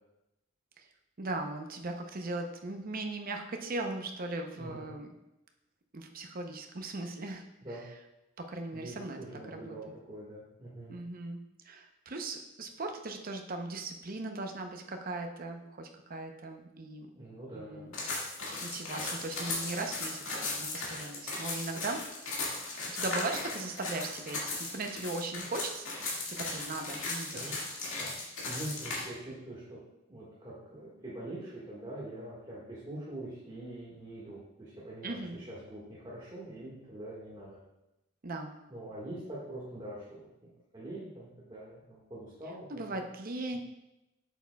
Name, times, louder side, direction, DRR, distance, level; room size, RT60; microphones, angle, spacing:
voice 1, 1.2-5.1 5.9-7.4 8.4-9.2 9.5-9.8 10.9-11.4 11.6-17.1 17.5-17.9 18.6-22.1 22.9-27.5 35.0-35.4 38.2-38.5 42.7-43.6, right 2 dB, 45° right, 4 dB, 0.7 m, -38 dB
voice 2, 8.7-11.0 17.1-17.8 27.3-27.6 28.0-28.2 28.4-29.8 30.1-37.6 38.7-43.0 43.5-43.6, right 1 dB, 25° right, -8 dB, 1.7 m, -44 dB
sound 1, 17.9-29.0, left 3 dB, 85° left, 2.0 m, -37 dB
8.6 x 7.3 x 2.3 m, 0.93 s
head